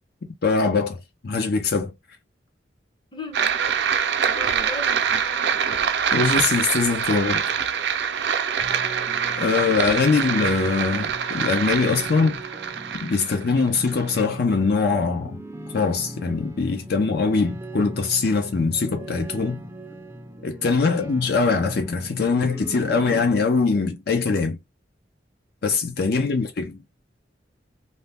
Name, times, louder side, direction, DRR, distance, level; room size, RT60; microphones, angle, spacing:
voice 1, 0.4-1.0 1.2-1.9 6.1-7.4 9.4-12.4 12.9-15.4 15.7-19.6 20.4-24.6 25.6-26.8, left 4 dB, 60° left, 0.6 m, -22 dB
voice 2, 3.1-3.6 4.3-5.9 20.9-21.1 26.1-26.4, left 3 dB, 25° left, 0.7 m, -39 dB
sound 1, 3.3-14.2, right 7 dB, 70° right, 0.5 m, -25 dB
sound 2, 8.6-23.4, right 1 dB, 15° right, 0.4 m, -39 dB
2.7 x 2.1 x 3.3 m
head